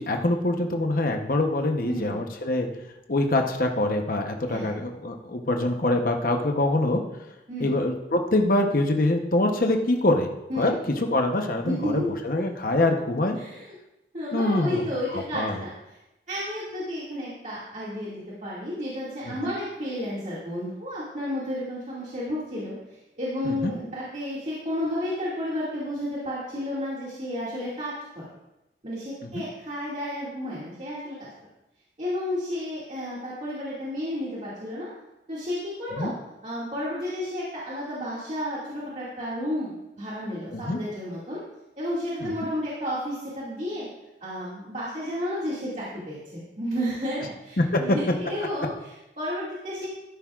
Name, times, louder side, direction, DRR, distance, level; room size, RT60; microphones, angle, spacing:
voice 1, 0.0-2.7 3.1-7.0 7.6-10.3 10.6-10.7 11.0-13.4 14.3-14.8 15.1-15.6 19.3-19.4 23.4-23.7 29.2-29.3 35.9-36.1 40.5-40.8 42.2-42.3 47.6-47.7, left 2 dB, 50° left, 3 dB, 0.9 m, -24 dB
voice 2, 1.8-2.2 4.5-4.7 7.5-7.7 10.5-10.7 11.6-12.1 13.4-13.6 14.1-16.0 16.3-28.2 28.8-31.2 32.0-34.9 35.3-36.1 36.4-41.4 41.8-43.9 44.2-49.9, left 1 dB, 40° right, -8 dB, 2.2 m, -32 dB
13.0 x 10.5 x 2.4 m, 0.94 s
head